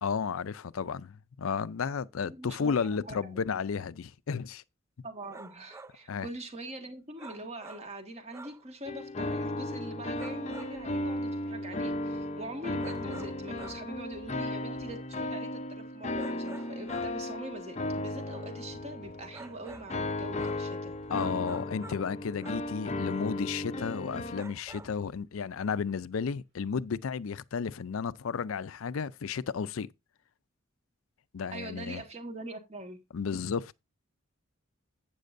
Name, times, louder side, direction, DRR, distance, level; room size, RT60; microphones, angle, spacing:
voice 1, 0.0-4.6 6.1-6.3 21.1-29.9 31.3-32.0 33.1-33.8, left 6 dB, 80° left, 0.5 m, -33 dB
voice 2, 2.2-3.4 5.0-20.9 22.9-23.3 31.5-33.0, right 1 dB, 30° right, 1.7 m, -43 dB
sound 1, 5.2-6.0 7.2-8.0 8.3-8.7 10.2-10.9 12.8-13.9 16.2-17.3 19.3-20.0 20.4-20.7 21.1-22.2 22.4-22.7 24.3-25.0, right 3 dB, 15° right, 0.4 m, -49 dB
sound 2, 8.9-24.4, left 1 dB, 30° left, 0.6 m, -35 dB
sound 3, 12.1-26.6 27.0-27.1 27.2-27.3 28.6-28.9, left 1 dB, 60° right, 3.9 m, -62 dB
11.5 x 8.5 x 2.6 m
head